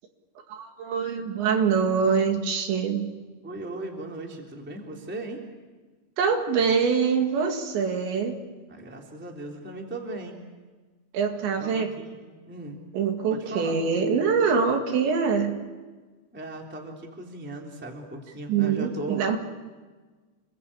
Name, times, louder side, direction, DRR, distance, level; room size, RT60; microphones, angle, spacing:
voice 1, 0.5-3.1 6.2-8.4 11.1-11.9 12.9-15.6 18.5-19.4, right 6 dB, 75° right, 4 dB, 4.4 m, -24 dB
voice 2, 3.4-5.4 8.7-10.4 11.6-12.8 13.3-13.7 16.3-19.2, right 2 dB, 5° right, 1 dB, 2.3 m, -37 dB
29.0 x 21.0 x 8.7 m, 1.3 s
omnidirectional pair, 5.4 m